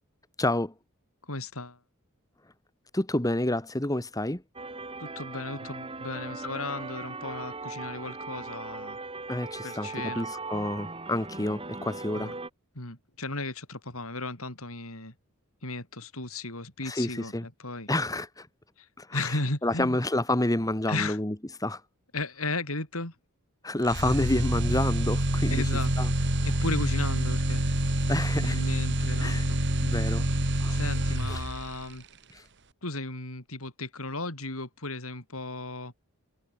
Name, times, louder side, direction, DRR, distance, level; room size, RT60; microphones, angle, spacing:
voice 1, 0.4-0.7 2.9-4.4 9.3-12.4 16.8-17.5 17.9-18.5 19.0-21.8 23.6-25.6 26.0-26.1 28.1-28.6 29.2-29.5 29.8-30.3 30.6-30.8 31.3-31.4 32.3-32.4, left 1 dB, 15° left, 1.5 m, -29 dB
voice 2, 1.3-1.8 5.0-9.0 9.6-10.3 12.2-12.3 12.8-15.1 15.6-17.9 18.8-18.9 19.1-20.0 20.9-21.2 22.1-23.1 25.5-25.9 26.4-28.0 28.4-29.6 30.7-32.0 32.8-35.9, left 2 dB, 75° left, 6.9 m, -35 dB
sound 1, 4.6-12.5, right 3 dB, 25° right, 3.8 m, -39 dB
sound 2, 23.8-31.8, right 1 dB, 55° right, 3.1 m, -27 dB
head